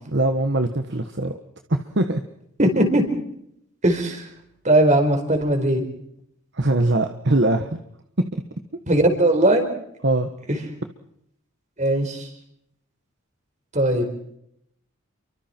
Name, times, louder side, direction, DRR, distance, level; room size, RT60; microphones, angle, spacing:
voice 1, 0.1-1.3 1.7-2.2 6.5-7.7 10.0-10.3, right 2 dB, 55° right, 6 dB, 1.4 m, -21 dB
voice 2, 2.6-3.2 3.8-4.3 4.6-5.8 8.9-9.6 10.5-10.6 11.8-12.3 13.7-14.1, right 1 dB, 35° right, 5 dB, 4.9 m, -19 dB
30.0 x 24.5 x 4.5 m, 0.74 s
head